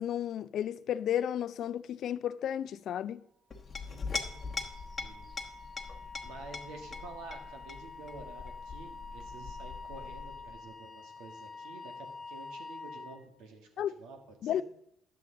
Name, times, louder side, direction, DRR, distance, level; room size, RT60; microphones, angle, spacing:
voice 1, 0.0-3.2 13.8-14.0 14.4-14.6, left 10 dB, 65° left, 0.4 m, -33 dB
Chink clink, 3.5-10.6, left 4 dB, 35° left, 1.1 m, -42 dB
Wind instrument woodwind instrument, 3.8-13.2, left 3 dB, 5° left, 1.5 m, -47 dB
voice 2, 6.0-14.6, right 3 dB, 85° right, 1.6 m, -50 dB
10.5 x 7.7 x 3.8 m
cardioid pair, 85°, 0 cm